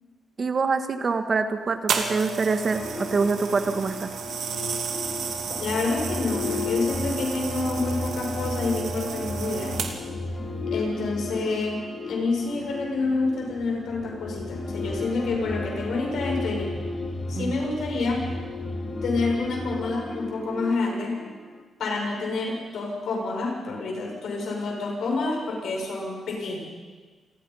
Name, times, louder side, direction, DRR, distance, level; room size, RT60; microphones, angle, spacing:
voice 1, 0.4-4.1 17.3-17.5, right 4 dB, 40° right, 8 dB, 1.5 m, -25 dB
sound 1, 1.9-10.2 10.9-11.2, right 6 dB, 75° right, 2.5 m, -32 dB
sound 2, 2.7-21.6, left 3 dB, 30° left, 2.4 m, -33 dB
voice 2, 5.6-9.9 10.7-16.8 17.3-18.3 19.0-21.2 21.8-26.6, left 3 dB, 75° left, 0 dB, 6.7 m, -28 dB
27.5 x 20.0 x 5.6 m, 1.4 s
cardioid pair, 130°, 0 cm